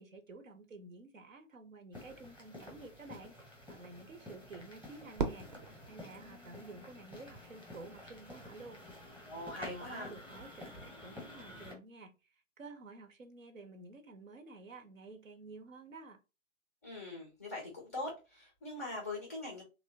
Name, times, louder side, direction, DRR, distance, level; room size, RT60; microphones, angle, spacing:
voice 1, 0.0-3.4 3.7-5.5 5.9-8.8 9.6-16.2, right 3 dB, 85° right, 8 dB, 0.8 m, -51 dB
sound 1, 1.9-11.7, left 1 dB, 5° right, 0.7 m, -51 dB
Fireworks, 5.2-7.4, right 4 dB, 40° right, 0.6 m, -40 dB
voice 2, 9.2-10.1 16.8-19.6, left 2 dB, 15° left, -1 dB, 0.3 m, -42 dB
2.9 x 2.0 x 2.6 m, 0.29 s
figure-of-eight pair, 120°, 39 cm